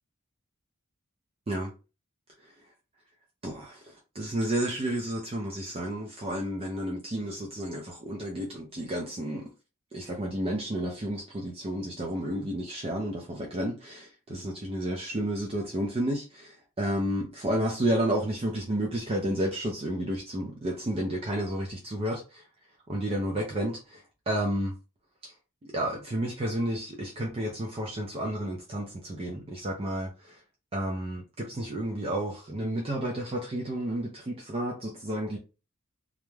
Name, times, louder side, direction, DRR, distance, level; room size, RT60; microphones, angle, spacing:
voice 1, 3.4-9.5 9.9-22.4 22.9-24.7 25.2-25.3 25.6-30.4 30.7-35.4, right 1 dB, 25° right, 0.4 m, -31 dB
2.4 x 2.1 x 3.1 m
head